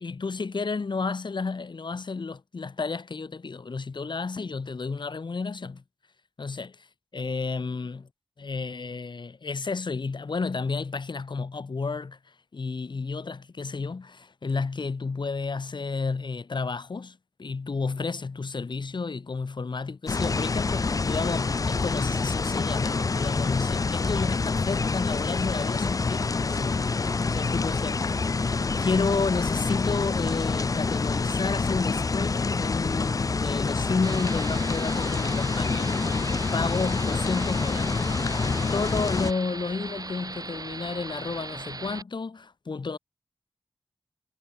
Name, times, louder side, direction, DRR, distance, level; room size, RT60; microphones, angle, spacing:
voice 1, 0.0-5.8 6.4-6.7 7.1-8.1 8.4-27.9 28.8-36.0 36.5-38.0 38.4-43.0, left 4 dB, 55° left, 1.6 m, -31 dB
sound 1, 20.1-39.3, left 4 dB, 40° left, 0.4 m, -27 dB
sound 2, 34.0-42.0, right 3 dB, 40° right, 1.7 m, -38 dB
wide cardioid pair, 65°, 9 cm